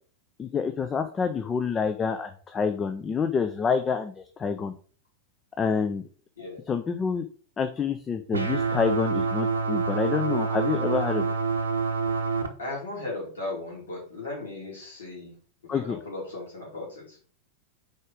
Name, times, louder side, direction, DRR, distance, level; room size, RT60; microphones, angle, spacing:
voice 1, 0.4-4.7 5.6-6.0 6.7-7.3 7.6-11.3 15.7-16.0, left 6 dB, 20° left, 7 dB, 0.5 m, -27 dB
sound 1, 8.3-12.5, right 4 dB, 75° right, 0.8 m, -27 dB
voice 2, 12.6-15.3 15.6-17.2, left 2 dB, 70° left, -4 dB, 2.9 m, -36 dB
4.9 x 4.3 x 4.9 m, 0.42 s
figure-of-eight pair, 90°, 0 cm